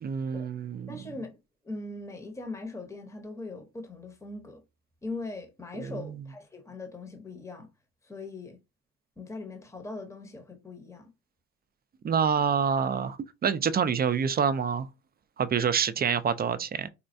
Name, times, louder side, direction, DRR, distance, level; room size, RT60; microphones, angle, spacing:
voice 1, 0.0-1.0 5.9-6.2 12.0-14.9 15.4-16.9, right 7 dB, 30° right, 0.4 m, -27 dB
voice 2, 0.9-1.4 1.6-4.6 5.0-7.7 8.0-8.6 9.2-11.1, left 2 dB, 10° left, 0.8 m, -40 dB
4.2 x 2.2 x 2.6 m
cardioid pair, 90°, 30 cm